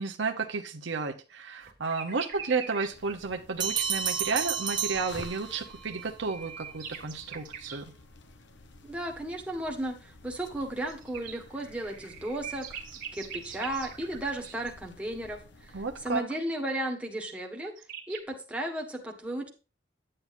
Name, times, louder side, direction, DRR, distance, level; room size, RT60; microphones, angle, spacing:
voice 1, 0.0-7.9 15.7-16.2, right 4 dB, 70° right, 5 dB, 0.8 m, -32 dB
sound 1, 1.6-3.0 5.6-7.9 10.5-14.7 17.3-17.4 17.6-18.2, right 7 dB, 50° right, 1.8 m, -43 dB
sound 2, 2.9-16.2, left 2 dB, 65° left, 0.9 m, -51 dB
sound 3, 3.6-5.8, right 8 dB, 25° right, 0.7 m, -31 dB
voice 2, 8.9-12.8 13.1-17.7 18.1-19.5, right 1 dB, 5° right, 0 dB, 1.5 m, -34 dB
9.9 x 8.6 x 2.6 m, 0.33 s
head